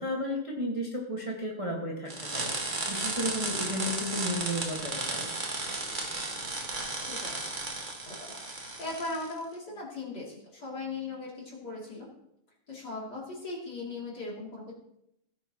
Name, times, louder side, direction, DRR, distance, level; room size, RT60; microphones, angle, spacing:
voice 1, 0.0-5.3, equal, 20° right, -2 dB, 0.8 m, -34 dB
sound 1, 2.1-9.3, right 2 dB, 50° right, 0.5 m, -34 dB
voice 2, 8.1-12.1 12.7-14.7, left 3 dB, 35° left, -4 dB, 3.2 m, -39 dB
17.5 x 8.7 x 3.0 m, 0.80 s
omnidirectional pair, 3.4 m